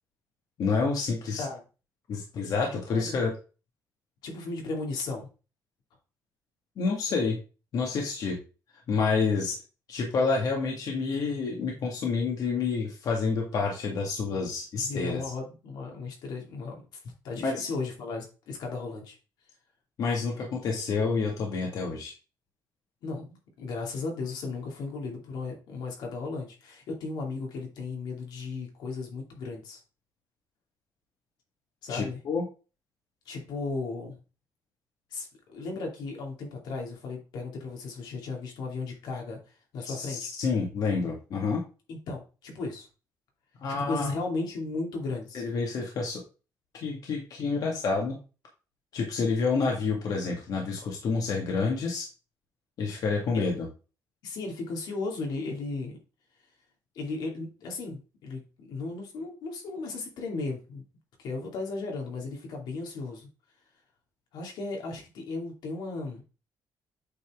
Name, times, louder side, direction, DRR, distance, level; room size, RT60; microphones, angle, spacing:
voice 1, 0.6-1.4 2.1-3.3 6.8-7.4 7.7-8.4 8.9-9.6 9.9-15.2 17.4-17.7 20.0-22.1 31.9-32.4 39.9-41.6 43.6-44.1 45.3-46.2 46.8-48.2 48.9-52.1 52.8-53.7, left 4 dB, 65° left, 0 dB, 1.8 m, -28 dB
voice 2, 2.9-3.2 4.2-5.3 14.7-16.8 17.2-19.2 23.0-29.8 31.8-32.2 33.3-34.2 35.1-39.4 39.7-40.3 41.9-42.9 43.7-45.4 53.3-53.4 54.2-56.0 56.9-60.8 61.2-63.3 64.3-66.2, left 3 dB, 85° left, 1 dB, 2.4 m, -35 dB
8.4 x 4.2 x 3.6 m, 0.33 s
cardioid pair, 130°, 7 cm